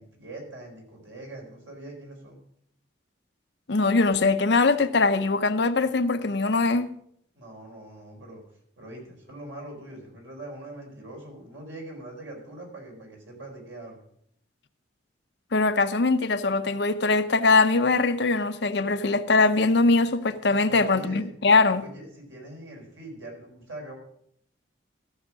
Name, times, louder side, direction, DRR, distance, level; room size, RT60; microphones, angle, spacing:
voice 1, 0.0-2.4 7.3-8.4 8.8-14.0 20.7-21.3 21.7-24.0, right 1 dB, 90° right, 4.5 m, -42 dB
voice 2, 3.7-6.9 15.5-21.8, left 3 dB, 65° left, 0.7 m, -22 dB
14.5 x 6.3 x 6.1 m
head